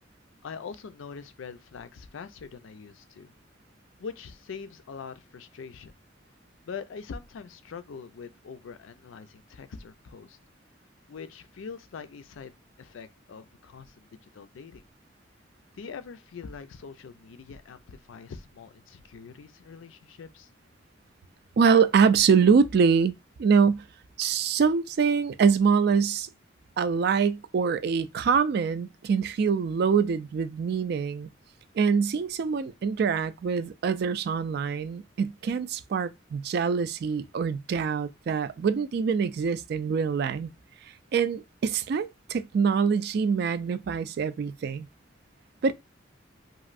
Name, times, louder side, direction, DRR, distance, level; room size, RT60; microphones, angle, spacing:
voice 1, 0.4-3.3 4.0-5.9 6.6-10.4 11.1-14.8 15.7-20.5, left 5 dB, 85° left, 0.4 m, -43 dB
voice 2, 21.6-23.1 23.4-23.8 24.2-26.3 26.8-31.3 31.8-40.5 41.1-44.9 45.6-45.7, right 6 dB, 55° right, 0.3 m, -24 dB
3.0 x 2.6 x 2.5 m
head